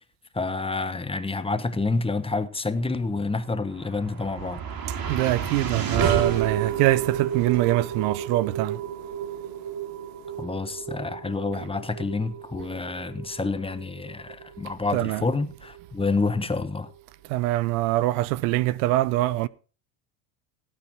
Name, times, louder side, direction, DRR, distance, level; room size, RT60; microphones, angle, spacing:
voice 1, 0.3-4.6 10.4-16.9, left 3 dB, 10° left, 1.3 m, -28 dB
sound 1, 3.4-15.8, right 8 dB, 45° right, 3.5 m, -31 dB
voice 2, 5.1-8.8 14.9-15.3 17.3-19.5, right 17 dB, 70° right, 0.8 m, -24 dB
17.5 x 8.9 x 4.4 m
hypercardioid pair, 90°, 49 cm